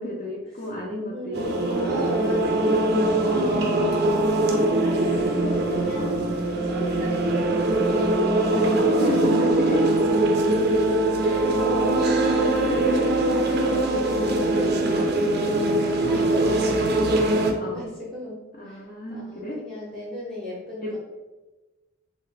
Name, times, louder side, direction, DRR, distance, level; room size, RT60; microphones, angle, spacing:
voice 1, 0.0-2.4 2.9-3.2 4.0-4.4 6.0-6.2 9.0-10.2 14.9-15.2 17.6-17.9 18.5-19.6 20.8-21.0, left 1 dB, 40° left, -4 dB, 0.5 m, -32 dB
voice 2, 1.1-2.8 3.9-10.2 10.5-18.8 19.1-21.0, left 1 dB, ahead, -8 dB, 0.7 m, -37 dB
sound 1, 1.3-17.5, right 2 dB, 50° right, 0.4 m, -22 dB
3.2 x 2.7 x 3.3 m, 1.2 s
head